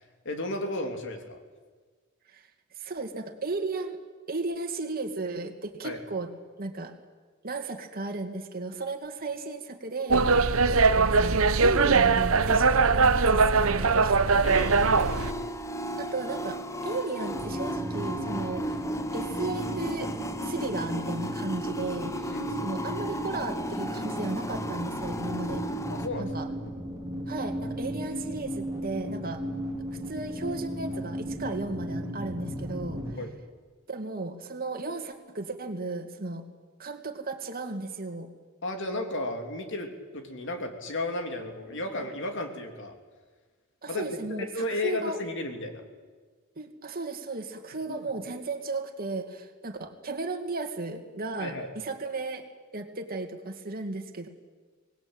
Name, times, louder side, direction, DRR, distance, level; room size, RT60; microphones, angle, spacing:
voice 1, 0.0-1.4 5.8-6.0 14.4-15.3 22.3-22.7 25.9-26.3 33.2-33.3 38.6-42.9 43.9-45.8 47.9-48.1 51.4-51.7, left 2 dB, 60° left, 5 dB, 3.1 m, -34 dB
voice 2, 2.7-4.0 4.3-6.3 6.6-7.0 7.4-14.2 15.9-18.9 19.1-20.1 20.4-25.6 26.2-26.5 27.3-29.4 29.9-33.2 33.9-36.5 36.8-38.3 41.7-41.8 43.8-45.2 46.6-52.4 52.7-54.3, right 3 dB, 45° right, 4 dB, 2.4 m, -35 dB
sound 1, 10.1-15.3, right 4 dB, 80° right, 0.9 m, -21 dB
sound 2, 14.5-26.1, equal, 15° left, 0.9 m, -34 dB
sound 3, 17.3-33.1, equal, 20° right, 3.3 m, -36 dB
24.5 x 19.5 x 9.0 m, 1.5 s
head